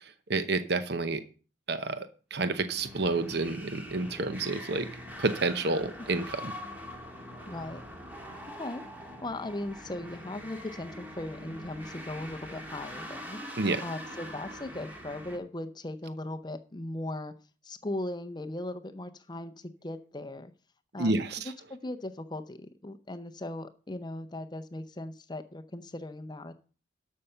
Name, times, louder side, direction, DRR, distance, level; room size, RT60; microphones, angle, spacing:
voice 1, 0.3-1.2 1.7-4.9 5.2-6.5 13.6-13.8 21.0-21.4, right 3 dB, 55° right, 10 dB, 0.8 m, -29 dB
sound 1, 2.5-15.4, equal, 10° right, 1.9 m, -43 dB
voice 2, 7.5-7.8 8.6-8.8 9.2-13.4 13.8-17.3 17.6-20.5 20.9-26.5, left 1 dB, 20° left, 10 dB, 0.6 m, -38 dB
12.5 x 5.6 x 6.6 m, 0.38 s
head